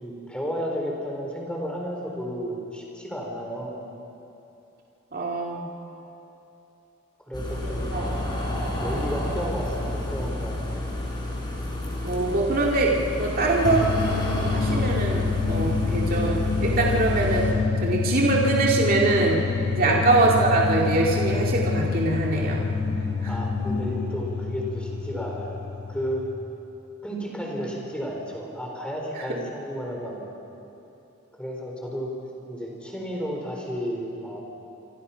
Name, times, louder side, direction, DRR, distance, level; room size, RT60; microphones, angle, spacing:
voice 1, 0.0-3.8 7.3-8.3 8.8-10.8 19.8-20.1 23.3-25.6 25.9-26.3 27.0-30.3 31.4-32.1 32.5-34.4, equal, 5° left, -1 dB, 4.1 m, -32 dB
voice 2, 5.1-5.7 7.9-8.1 12.0-13.9 14.5-17.5 17.8-19.4 19.7-22.7 23.2-23.3 29.2-29.3, right 2 dB, 40° right, -2 dB, 2.5 m, -23 dB
sound 1, 7.3-17.5, left 1 dB, 20° left, 4.6 m, -30 dB
sound 2, 13.6-26.3, left 4 dB, 55° left, 2.2 m, -27 dB
26.5 x 26.0 x 5.8 m, 2.9 s
head